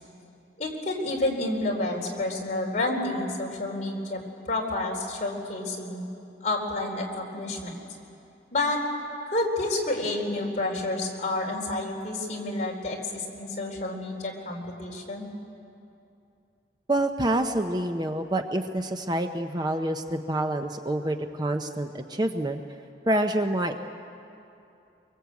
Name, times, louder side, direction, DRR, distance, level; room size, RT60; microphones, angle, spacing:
voice 1, 0.6-4.2 4.5-6.0 6.4-7.8 8.5-8.8 9.3-15.3, left 2 dB, 40° left, -1 dB, 4.1 m, -29 dB
voice 2, 16.9-22.6 23.1-23.8, right 1 dB, 20° right, 6 dB, 0.7 m, -27 dB
23.5 x 23.5 x 8.3 m, 2.7 s
head